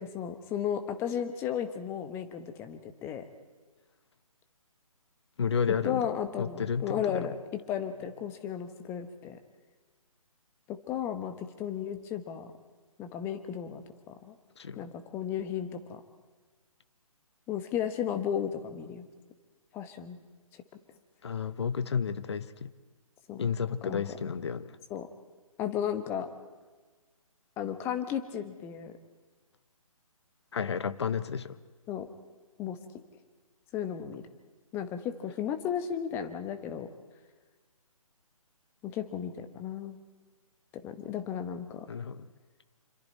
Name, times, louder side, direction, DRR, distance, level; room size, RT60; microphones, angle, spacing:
voice 1, 0.0-3.2 5.8-7.3 7.7-9.4 10.7-12.5 13.0-13.8 14.1-14.3 14.8-16.0 17.5-19.0 19.7-20.2 23.3-23.4 23.8-24.0 24.9-25.1 25.6-26.3 27.6-28.9 31.9-32.1 32.6-32.8 33.7-34.2 34.7-36.9 38.8-40.0 40.7-41.9, left 9 dB, 15° left, 9 dB, 1.1 m, -34 dB
voice 2, 5.4-6.1 6.4-7.3 14.6-14.9 21.2-22.7 23.4-24.8 30.5-31.6 41.9-42.3, left 6 dB, 50° left, 14 dB, 1.0 m, -31 dB
26.5 x 26.0 x 4.4 m, 1.4 s
figure-of-eight pair, 140°, 18 cm